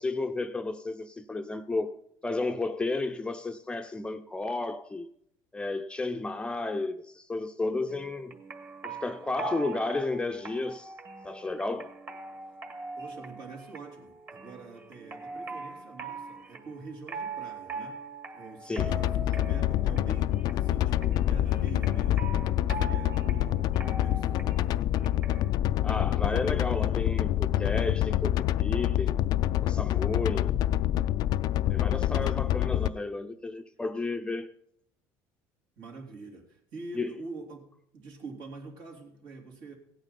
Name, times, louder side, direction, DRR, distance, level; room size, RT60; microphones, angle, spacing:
voice 1, 0.0-1.9 2.2-5.1 5.5-8.3 8.8-10.9 11.2-11.9 18.7-18.9 25.8-29.2 29.6-30.5 31.7-34.5 36.9-37.1, left 2 dB, 10° left, 0.6 m, -32 dB
sound 1, 7.9-25.5, right 4 dB, 25° right, 1.8 m, -42 dB
voice 2, 12.9-18.1 18.3-22.3 22.7-24.8 31.9-32.4 35.8-39.7, right 3 dB, 65° right, 3.2 m, -45 dB
sound 2, 18.8-32.9, left 13 dB, 60° left, 0.4 m, -26 dB
17.0 x 8.9 x 4.2 m
cardioid pair, 115°, 8 cm